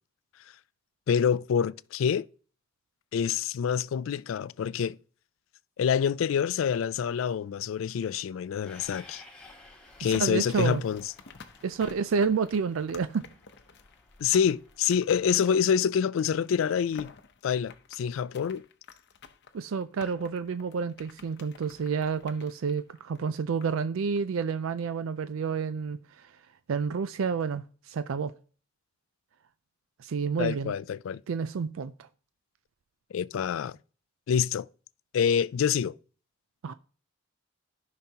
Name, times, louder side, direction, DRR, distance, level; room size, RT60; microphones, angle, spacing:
voice 1, 1.1-2.3 3.1-5.0 5.8-9.2 10.0-11.0 14.2-17.1 17.4-18.6 30.4-31.2 33.1-33.8 34.3-34.7 35.1-35.9, left 7 dB, 75° left, 0.3 m, -26 dB
Train, 8.6-15.0, left 2 dB, 5° left, 1.7 m, -55 dB
sound 1, 9.9-23.9 24.2-24.3, left 5 dB, 55° left, 0.7 m, -50 dB
voice 2, 10.0-10.8 11.6-13.3 19.5-26.3 26.7-28.3 30.0-30.7 31.3-31.9 36.6-36.7, right 5 dB, 80° right, 0.4 m, -29 dB
14.0 x 5.7 x 2.8 m
head